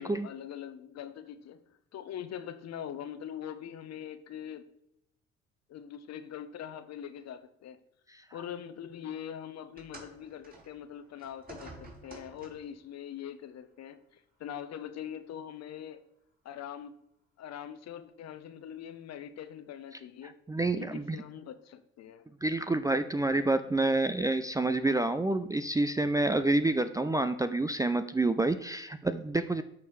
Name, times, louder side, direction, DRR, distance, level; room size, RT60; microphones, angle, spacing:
voice 1, 0.0-1.6 1.9-4.6 5.7-7.8 8.3-11.7 12.0-16.0 16.4-16.9 17.4-20.3 20.8-22.3, left 9 dB, 50° left, 0.9 m, -42 dB
sound 1, 9.8-12.8 13.8-14.0 14.8-14.9, right 2 dB, 25° right, 3.1 m, -50 dB
voice 2, 20.2-21.2 22.4-29.6, right 2 dB, 10° right, 0.4 m, -28 dB
13.0 x 4.6 x 3.3 m
hypercardioid pair, 60°, 33 cm